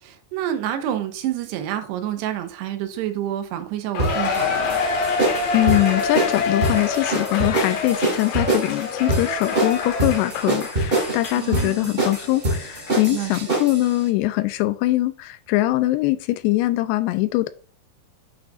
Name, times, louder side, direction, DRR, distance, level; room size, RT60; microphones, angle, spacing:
voice 1, 0.0-4.8 11.4-11.9 13.1-13.6, right 11 dB, 85° right, 2.9 m, -28 dB
Cheering, 3.9-11.7 12.1-12.2 12.9-13.0, left 4 dB, 65° left, 2.9 m, -26 dB
sound 1, 4.0-13.9, right 2 dB, 70° right, 0.5 m, -25 dB
voice 2, 5.5-17.5, left 17 dB, 85° left, 2.6 m, -22 dB
8.5 x 6.1 x 2.4 m
omnidirectional pair, 4.8 m